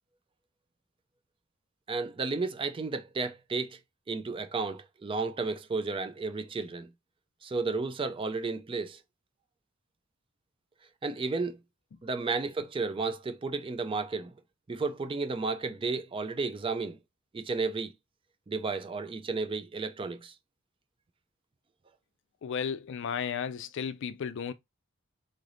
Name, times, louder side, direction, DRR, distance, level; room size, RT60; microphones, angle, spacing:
voice 1, 1.9-3.8 4.1-6.9 7.4-9.0 11.0-11.6 12.0-14.3 14.7-17.0 17.3-17.9 18.5-20.3, right 4 dB, 25° right, 0.4 m, -32 dB
voice 2, 22.4-24.5, left 7 dB, 60° left, 0.4 m, -34 dB
3.8 x 3.3 x 2.5 m
head